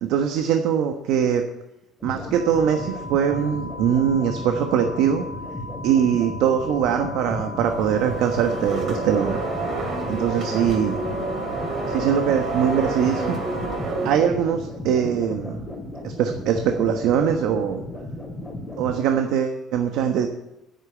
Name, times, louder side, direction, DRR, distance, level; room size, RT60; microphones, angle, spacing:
voice 1, 0.0-1.4 2.0-5.2 5.8-9.4 10.1-11.0 11.9-13.4 14.0-15.7 16.0-17.8 18.8-20.3, right 8 dB, 75° right, 5 dB, 1.2 m, -22 dB
sound 1, 2.0-19.0, left 1 dB, 5° left, 2.5 m, -35 dB
sound 2, 2.3-13.7, left 2 dB, 25° right, 3.1 m, -38 dB
sound 3, 7.6-14.2, right 3 dB, 40° right, 2.9 m, -29 dB
10.5 x 9.0 x 8.8 m, 0.92 s
cardioid pair, 150°, 0 cm